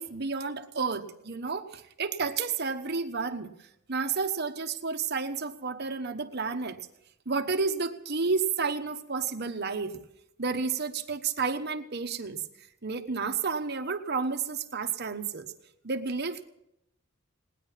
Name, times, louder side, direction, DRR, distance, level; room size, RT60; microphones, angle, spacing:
voice 1, 0.0-6.8 7.3-10.0 10.4-12.4 12.8-15.5 15.8-16.5, right 4 dB, 50° right, 7 dB, 1.1 m, -31 dB
19.0 x 10.0 x 7.3 m, 0.82 s
head